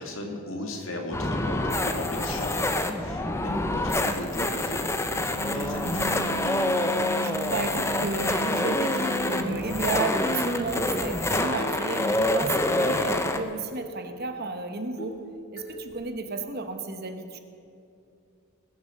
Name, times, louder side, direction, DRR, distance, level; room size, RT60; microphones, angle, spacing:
voice 1, 0.0-6.4, left 1 dB, 65° left, 2 dB, 2.0 m, -36 dB
sound 1, 1.1-13.4, left 1 dB, 10° left, 0.6 m, -27 dB
sound 2, 4.8-4.9 5.3-5.4 5.7-6.1 6.5-7.2 8.2-8.9 9.2-9.5 10.1-10.3 11.4-12.0 12.3-13.0 13.3-13.4 13.7-14.0 14.4-14.5 15.0-15.3 15.6-16.0, right 1 dB, 40° left, 2.0 m, -41 dB
Wind instrument woodwind instrument, 5.3-10.1, right 2 dB, 75° right, 0.6 m, -36 dB
voice 2, 6.9-15.2 15.5-17.4, right 3 dB, 45° right, 6 dB, 1.1 m, -33 dB
21.0 x 7.1 x 6.5 m, 2.6 s
head